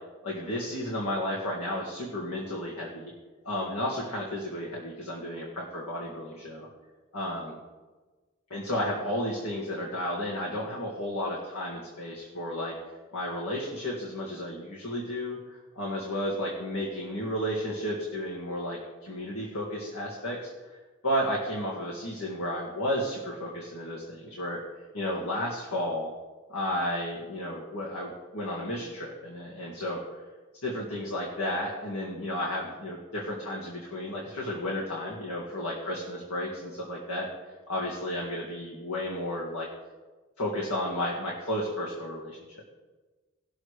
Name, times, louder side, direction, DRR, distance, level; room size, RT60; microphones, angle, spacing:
voice 1, 0.2-3.1 3.4-6.7 7.1-7.5 8.5-12.7 13.1-20.5 21.0-24.6 24.9-26.1 26.5-30.0 30.6-37.3 37.7-39.7 40.4-42.4, left 1 dB, 80° left, -3 dB, 1.9 m, -32 dB
19.0 x 6.5 x 3.3 m, 1.3 s
head